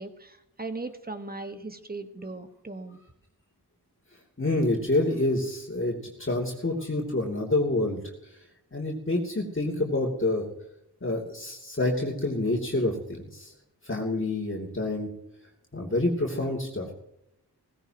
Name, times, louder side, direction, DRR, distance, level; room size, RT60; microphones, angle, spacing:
voice 1, 0.0-3.0, right 3 dB, 20° right, 8 dB, 1.5 m, -38 dB
voice 2, 4.4-8.0 8.3-8.4 8.7-10.5 11.0-13.5 13.8-15.1 15.7-16.9, left 2 dB, 30° left, -2 dB, 2.9 m, -27 dB
17.5 x 16.0 x 3.0 m, 0.81 s
cardioid pair, 50°, 40 cm